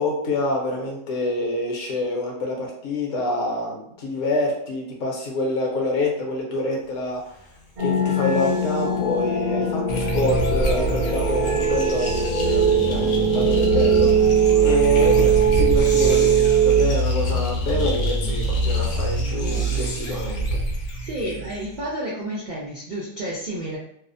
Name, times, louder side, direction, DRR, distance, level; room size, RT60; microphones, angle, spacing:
voice 1, 0.0-7.4 7.8-14.3 14.6-20.6, left 2 dB, 65° left, 0 dB, 1.0 m, -26 dB
Breathing, 7.1-9.1 10.3-20.6, left 2 dB, 50° left, 0.6 m, -41 dB
sound 1, 7.8-16.8, right 5 dB, 55° right, 0.8 m, -20 dB
sound 2, 9.9-21.8, right 2 dB, 85° left, 1.1 m, -25 dB
voice 2, 20.9-23.8, right 1 dB, 80° right, -5 dB, 0.4 m, -30 dB
2.6 x 2.1 x 2.5 m, 0.73 s
omnidirectional pair, 1.5 m